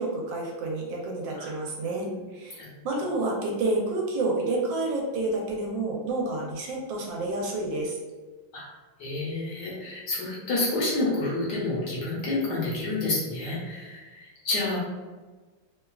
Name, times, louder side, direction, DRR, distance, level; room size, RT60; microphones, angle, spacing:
voice 1, 0.0-8.0, right 2 dB, 75° right, -1 dB, 1.3 m, -29 dB
voice 2, 1.8-2.2 2.6-2.8 8.5-8.6 9.0-14.8, left 2 dB, 65° left, -5 dB, 1.2 m, -29 dB
3.2 x 2.3 x 2.2 m, 1.3 s
omnidirectional pair, 2.2 m